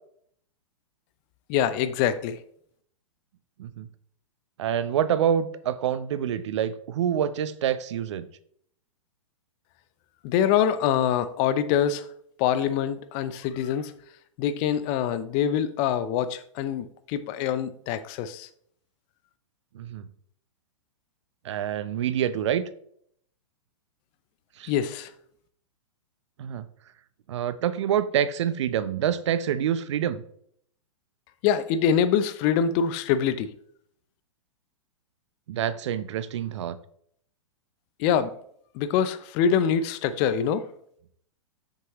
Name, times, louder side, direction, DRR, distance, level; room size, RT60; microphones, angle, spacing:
voice 1, 1.5-2.4 10.2-12.1 12.4-13.9 14.4-18.5 24.7-25.1 31.4-33.5 38.0-38.3 38.7-40.7, left 8 dB, 35° left, 13 dB, 0.6 m, -24 dB
voice 2, 4.6-8.3 19.7-20.0 21.4-22.6 24.6-24.7 26.4-26.6 27.3-30.2 35.5-36.8, right 9 dB, 60° right, 14 dB, 0.7 m, -26 dB
7.6 x 6.7 x 3.0 m, 0.65 s
hypercardioid pair, 115°, 17 cm